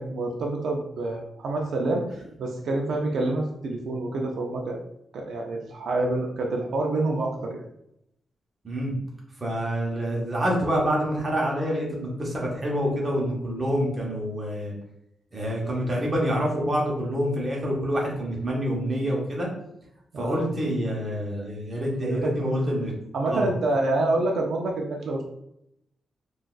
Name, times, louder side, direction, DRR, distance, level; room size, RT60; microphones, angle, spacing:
voice 1, 0.0-4.8 5.1-7.7 20.1-20.5 22.0-22.5 23.1-25.2, right 2 dB, 70° right, 1 dB, 0.4 m, -27 dB
voice 2, 9.4-14.7 15.3-19.5 20.2-22.9 23.3-23.5, equal, 20° right, -3 dB, 0.8 m, -27 dB
3.8 x 2.3 x 2.3 m, 0.79 s
wide cardioid pair, 175°, 0 cm